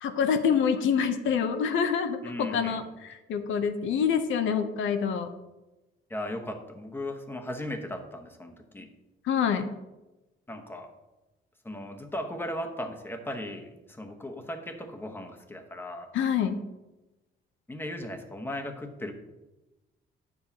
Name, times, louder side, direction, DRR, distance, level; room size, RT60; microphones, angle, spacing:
voice 1, 0.0-5.3 9.2-9.7 16.1-16.6, left 7 dB, 75° left, 7 dB, 0.7 m, -26 dB
voice 2, 2.2-2.8 6.1-8.9 10.5-10.9 11.6-16.1 17.7-19.1, left 1 dB, 10° left, 4 dB, 1.0 m, -37 dB
8.7 x 7.1 x 2.8 m, 1.0 s
cardioid pair, 90°, 20 cm